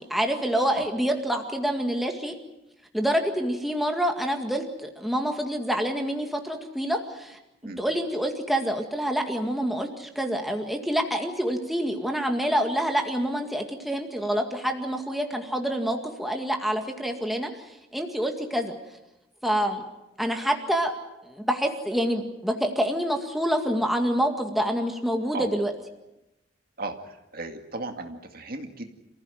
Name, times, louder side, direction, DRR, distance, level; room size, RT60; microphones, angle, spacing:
voice 1, 0.0-2.4 2.9-17.6 17.9-18.7 19.4-19.8 20.2-20.9 21.2-25.7, equal, ahead, 3 dB, 2.0 m, -27 dB
voice 2, 26.8-28.9, right 2 dB, 50° right, 5 dB, 2.2 m, -36 dB
28.5 x 15.5 x 9.3 m, 0.96 s
head